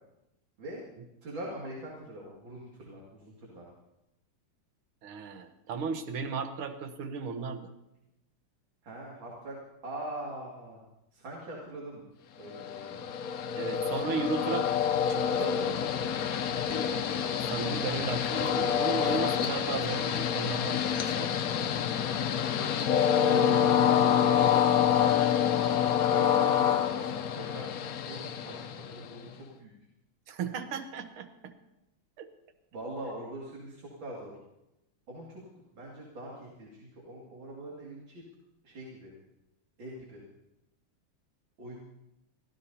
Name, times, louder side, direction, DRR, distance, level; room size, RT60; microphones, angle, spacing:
voice 1, 1.2-3.7 8.8-9.6 9.8-10.8 11.1-12.1 12.4-13.1 22.9-23.5 24.6-25.2 26.1-27.8 28.1-29.7 32.7-34.3 35.1-35.4 35.7-38.2 38.6-39.1 39.8-40.2 41.6-41.7, right 1 dB, 65° right, -3 dB, 3.1 m, -43 dB
voice 2, 5.0-7.7 13.6-14.8 15.1-15.6 16.7-21.6 30.3-31.5 32.2-32.3, right 5 dB, 85° right, 7 dB, 1.9 m, -36 dB
Train, 12.5-29.3, left 8 dB, 65° left, 0.9 m, -27 dB
24.0 x 15.5 x 2.8 m, 0.92 s
omnidirectional pair, 2.3 m